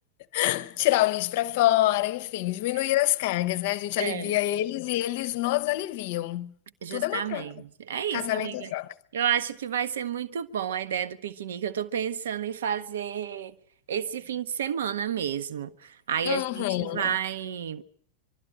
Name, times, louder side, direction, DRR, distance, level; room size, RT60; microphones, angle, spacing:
voice 1, 0.3-6.5 6.9-7.5 8.1-9.0 16.2-17.1, left 16 dB, 50° left, 0.8 m, -26 dB
voice 2, 4.0-4.3 6.8-8.7 9.1-13.5 13.9-17.8, right 9 dB, 60° right, 0.9 m, -31 dB
23.5 x 13.0 x 8.8 m
figure-of-eight pair, 90°, 0 cm